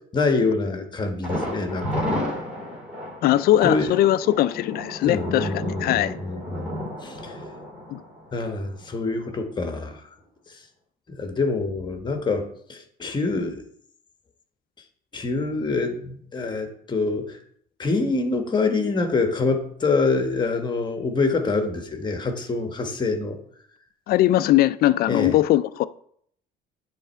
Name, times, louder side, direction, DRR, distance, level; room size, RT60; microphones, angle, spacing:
voice 1, 0.1-2.1 3.6-3.9 5.1-7.4 8.3-10.0 11.1-13.6 15.1-17.4 17.8-23.4 25.1-25.4, left 3 dB, 25° left, 1.3 m, -26 dB
Thunder, 1.2-9.0 9.3-9.4 9.8-9.9, equal, 5° right, 3.3 m, -32 dB
voice 2, 3.2-5.5 5.8-6.1 7.9-8.0 24.1-25.8, left 14 dB, 65° left, 0.4 m, -20 dB
10.0 x 3.4 x 4.5 m
cardioid pair, 110°, 17 cm